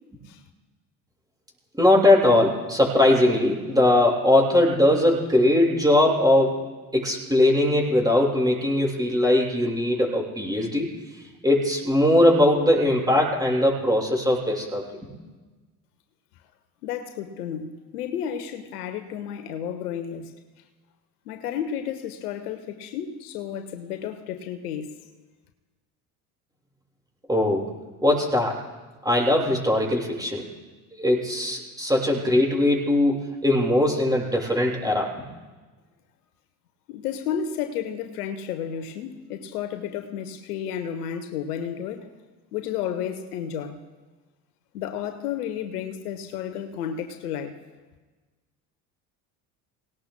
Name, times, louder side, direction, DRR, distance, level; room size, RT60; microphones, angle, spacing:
voice 1, 1.8-6.6 6.9-10.9 11.4-14.8 27.3-27.7 28.0-28.6 29.0-30.4 31.0-35.1, left 1 dB, 10° right, -4 dB, 6.5 m, -20 dB
voice 2, 16.8-20.3 21.3-25.0 36.9-42.1 42.5-43.8 44.7-47.6, left 8 dB, 85° left, 8 dB, 1.1 m, -32 dB
28.0 x 18.5 x 2.2 m, 1.3 s
hypercardioid pair, 65°, 45 cm